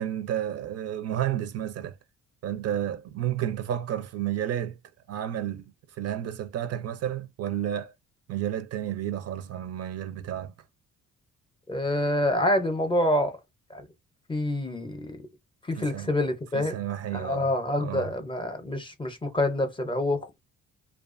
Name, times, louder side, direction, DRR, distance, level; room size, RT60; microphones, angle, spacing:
voice 1, 0.0-2.0 2.4-4.8 5.1-7.9 8.3-10.5 15.8-16.1 16.5-17.5 17.8-18.1, right 11 dB, 55° right, 0.4 m, -31 dB
voice 2, 11.7-13.4 13.7-13.9 14.3-15.3 15.6-16.8 17.1-20.4, left 1 dB, 15° left, 0.6 m, -27 dB
2.4 x 2.3 x 2.4 m
cardioid pair, 90°, 30 cm